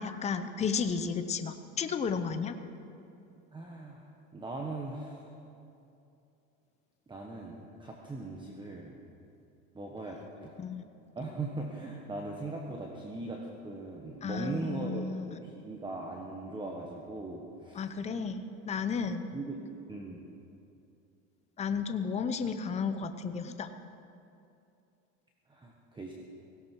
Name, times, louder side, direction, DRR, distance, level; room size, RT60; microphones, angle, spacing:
voice 1, 0.0-2.6 10.6-10.8 14.2-15.4 17.8-19.3 21.6-23.7, left 5 dB, 20° left, 9 dB, 0.8 m, -33 dB
voice 2, 3.5-4.0 4.3-5.2 7.1-9.0 9.7-10.5 11.1-17.9 19.3-19.6 19.9-20.2 25.5-26.1, right 2 dB, 15° right, 0 dB, 1.4 m, -39 dB
17.5 x 17.0 x 4.7 m, 2.7 s
cardioid pair, 130°, 32 cm